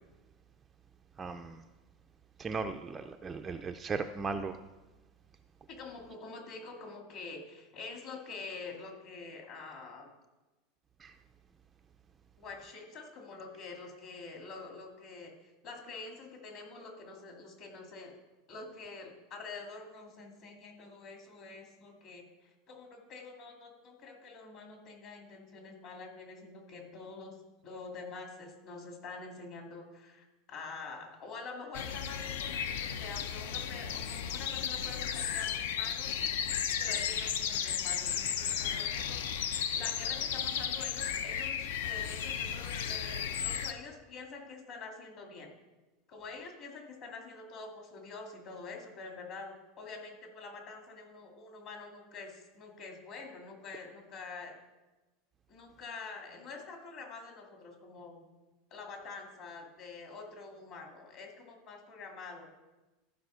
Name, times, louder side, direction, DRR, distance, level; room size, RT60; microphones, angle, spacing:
voice 1, 1.2-1.6 2.4-4.6 11.0-11.1, right 4 dB, 15° right, 6 dB, 0.3 m, -37 dB
voice 2, 5.8-10.1 12.4-18.1 18.5-27.4 27.6-36.1 36.8-45.5 46.1-54.5 55.5-58.3 58.7-62.5, left 4 dB, 40° left, 1 dB, 2.3 m, -46 dB
sound 1, 31.7-43.7, left 8 dB, 75° left, 0.6 m, -34 dB
14.0 x 5.0 x 6.3 m, 1.1 s
supercardioid pair, 170°, 0 cm